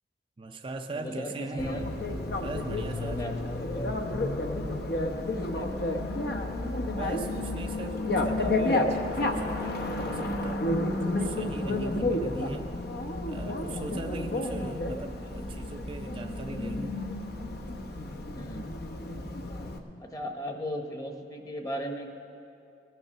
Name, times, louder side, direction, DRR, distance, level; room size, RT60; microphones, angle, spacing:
voice 1, 0.4-1.7 2.4-3.2 6.9-12.7 13.3-17.0, right 2 dB, 30° right, 3 dB, 0.5 m, -40 dB
voice 2, 0.9-1.9 2.9-4.0 5.0-6.1 15.2-15.5 18.3-18.7 20.0-22.1, equal, 20° left, 3 dB, 1.1 m, -37 dB
Bicycle, 1.6-19.8, left 2 dB, 60° left, 0.9 m, -31 dB
20.0 x 6.7 x 6.6 m, 2.6 s
head